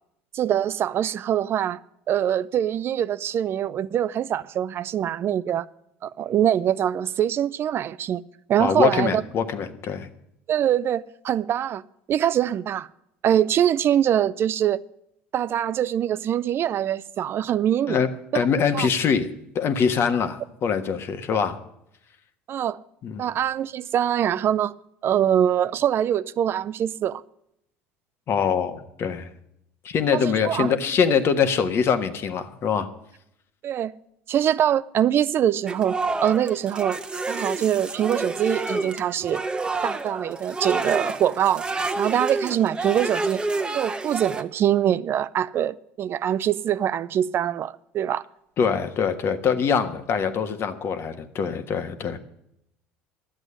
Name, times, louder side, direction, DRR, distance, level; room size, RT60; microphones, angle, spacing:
voice 1, 0.3-1.8 2.1-5.7 6.0-8.2 8.5-9.2 10.5-11.8 12.1-12.9 13.2-14.8 15.3-18.0 18.3-18.4 18.7-18.9 22.5-22.8 23.2-24.7 25.0-27.2 30.1-30.7 33.6-33.9 34.3-37.0 37.3-39.4 39.8-41.7 42.0-43.4 43.7-48.2, right 10 dB, 45° right, 0.4 m, -23 dB
voice 2, 8.6-10.1 17.9-19.3 19.5-21.6 23.0-23.2 28.3-29.3 29.8-32.9 48.6-52.2, left 6 dB, 50° left, 1.4 m, -23 dB
sound 1, 35.7-44.4, right 3 dB, 15° right, 1.0 m, -29 dB
11.5 x 8.0 x 10.0 m
hypercardioid pair, 75°, 6 cm